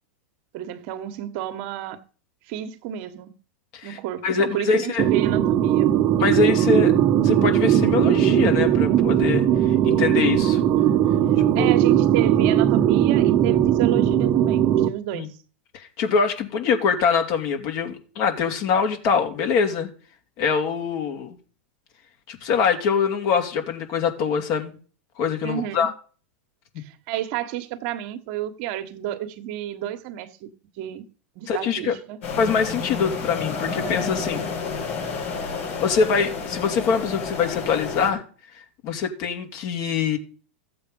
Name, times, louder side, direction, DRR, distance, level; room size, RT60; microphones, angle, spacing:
voice 1, 0.5-2.0 2.5-3.3 3.8-5.9 11.5-15.3 25.4-25.9 26.8-30.5 30.8-31.0 31.3-32.2, right 12 dB, 55° right, 1.4 m, -31 dB
voice 2, 3.7-5.0 6.2-6.9 7.2-10.6 11.5-11.7 15.1-15.3 15.7-19.9 20.4-21.3 22.3-24.8 25.2-25.9 31.5-31.9 32.4-34.4 35.8-38.2 38.8-40.2, left 6 dB, 50° left, 2.7 m, -24 dB
sound 1, 5.0-14.9, right 11 dB, 35° right, 1.2 m, -19 dB
sound 2, 32.2-38.1, left 5 dB, 75° left, 5.9 m, -30 dB
14.5 x 7.8 x 5.5 m
hypercardioid pair, 115°, 7 cm